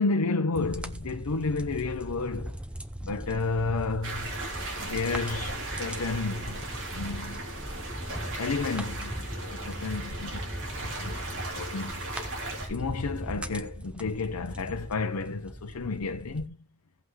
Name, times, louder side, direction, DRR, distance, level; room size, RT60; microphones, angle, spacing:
voice 1, 0.0-2.6 3.0-4.3 4.8-6.6 6.9-7.4 8.4-10.5 10.8-12.0 12.7-16.6, left 3 dB, 90° left, 0.7 m, -31 dB
sound 1, 0.5-16.5, equal, 5° right, 0.6 m, -39 dB
sound 2, 4.0-12.7, right 2 dB, 60° right, 3.2 m, -38 dB
17.0 x 5.7 x 3.2 m
head